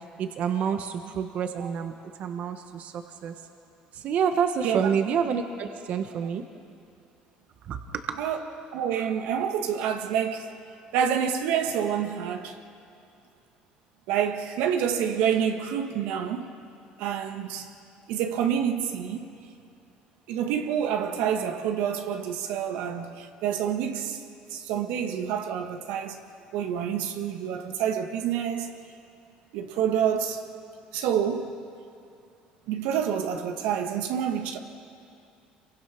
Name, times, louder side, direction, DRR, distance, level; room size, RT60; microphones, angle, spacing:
voice 1, 0.0-1.9 2.2-3.3 3.9-6.4 7.7-8.2, right 7 dB, 60° right, 1.3 m, -28 dB
voice 2, 8.7-10.5 10.9-12.6 14.1-16.5 17.0-17.7 18.1-19.3 20.3-24.2 24.5-26.2 26.5-28.8 29.5-30.4 30.9-31.5 32.7-34.6, right 8 dB, 85° right, 1.6 m, -28 dB
27.5 x 23.0 x 6.0 m
cardioid pair, 105°, 3 cm